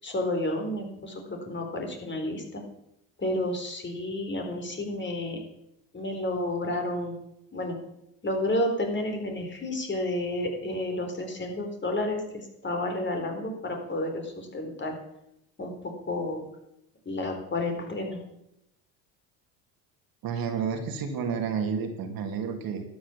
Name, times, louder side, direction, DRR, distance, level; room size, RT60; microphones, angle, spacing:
voice 1, 0.0-2.6 3.2-5.4 5.9-7.1 7.5-7.8 8.2-14.9 15.6-16.4 17.1-18.2, left 1 dB, 25° left, 3 dB, 4.2 m, -31 dB
voice 2, 20.2-22.8, right 6 dB, 55° right, 5 dB, 2.6 m, -30 dB
12.5 x 8.6 x 7.4 m, 0.81 s
supercardioid pair, 80°, 41 cm